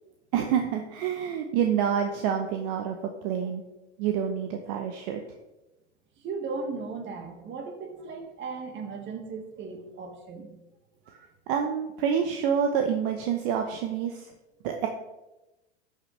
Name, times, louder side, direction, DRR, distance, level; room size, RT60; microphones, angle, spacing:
voice 1, 0.3-3.0 3.2-3.6 4.0-5.2 11.5-14.3 14.6-14.9, right 8 dB, 55° right, 4 dB, 1.0 m, -27 dB
voice 2, 6.2-10.5 11.1-11.3, right 4 dB, 35° right, 4 dB, 1.9 m, -37 dB
12.0 x 6.7 x 3.3 m, 0.99 s
hypercardioid pair, 105°, 34 cm